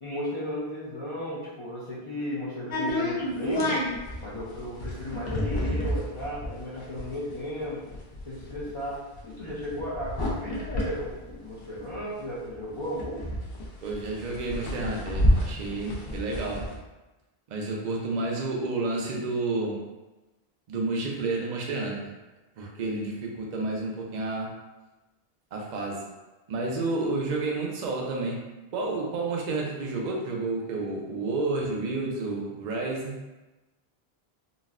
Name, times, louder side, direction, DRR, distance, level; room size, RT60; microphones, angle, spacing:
voice 1, 0.0-3.8 4.2-7.8 8.3-13.2, equal, 35° left, -10 dB, 0.6 m, -35 dB
sound 1, 2.7-12.2 12.5-12.6 12.8-16.7, left 1 dB, 65° left, 0.9 m, -29 dB
voice 2, 13.8-16.7 17.5-19.9 20.7-22.1 22.6-24.6 25.5-26.1 26.5-33.2, right 3 dB, 50° right, -1 dB, 0.6 m, -30 dB
3.9 x 2.2 x 2.4 m, 1.1 s
omnidirectional pair, 1.1 m